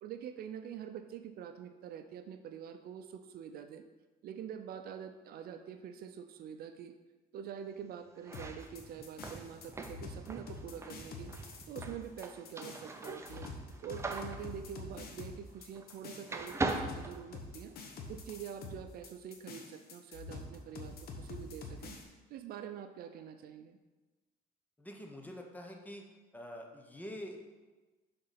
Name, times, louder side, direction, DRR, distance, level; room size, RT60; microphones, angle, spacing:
voice 1, 0.0-3.8 4.2-6.9 7.3-11.3 11.7-13.5 13.8-17.7 18.1-22.0 22.3-23.8, right 8 dB, 65° right, 8 dB, 0.5 m, -45 dB
sound 1, 8.2-16.0 16.3-17.9, right 2 dB, 15° right, 0.6 m, -41 dB
sound 2, 8.3-22.0, left 3 dB, 65° left, 1.1 m, -46 dB
voice 2, 24.8-26.0 26.3-27.4, equal, 10° left, 2 dB, 1.0 m, -46 dB
6.7 x 4.0 x 5.8 m, 1.2 s
cardioid pair, 110°, 17 cm